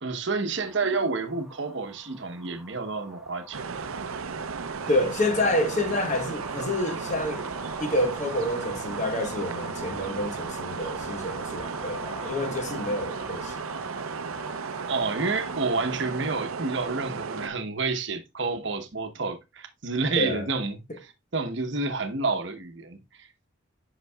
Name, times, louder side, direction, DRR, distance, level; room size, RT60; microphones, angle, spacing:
voice 1, 0.0-3.6 14.9-23.3, right 3 dB, 60° right, 0.9 m, -29 dB
sound 1, 0.6-15.7, right 1 dB, ahead, 0.8 m, -44 dB
sound 2, 3.5-17.5, right 5 dB, 90° right, 0.6 m, -34 dB
voice 2, 4.9-7.5 7.8-13.6 20.2-20.5, left 1 dB, 35° left, 1.0 m, -28 dB
8.1 x 5.9 x 2.3 m
head